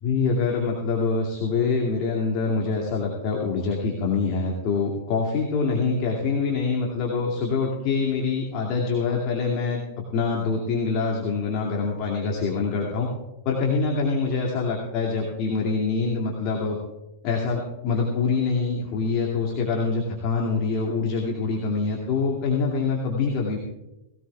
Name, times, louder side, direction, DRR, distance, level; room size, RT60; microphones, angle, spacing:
voice 1, 0.0-9.8 10.1-13.1 13.4-16.8 17.2-23.6, left 4 dB, 45° left, -2 dB, 2.5 m, -25 dB
19.5 x 17.5 x 2.4 m, 1.0 s
figure-of-eight pair, 95°, 0 cm